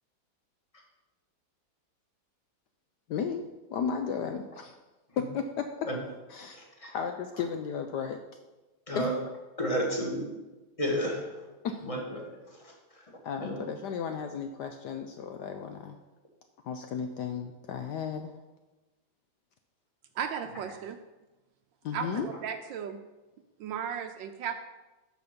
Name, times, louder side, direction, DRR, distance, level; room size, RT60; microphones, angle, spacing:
voice 1, 3.1-3.4 3.7-4.7 5.2-5.9 6.3-8.2 9.0-9.1 11.6-11.8 13.2-16.0 16.6-18.3 21.8-22.3, left 6 dB, 70° left, 6 dB, 1.1 m, -34 dB
voice 2, 6.5-6.9 8.9-9.1 9.6-10.3 10.8-11.2 11.8-12.2 13.4-13.6, equal, 15° left, 0 dB, 1.8 m, -31 dB
voice 3, 20.2-21.0 21.9-23.0 23.6-24.6, right 8 dB, 75° right, 7 dB, 1.2 m, -35 dB
12.5 x 5.2 x 5.2 m, 1.1 s
omnidirectional pair, 2.2 m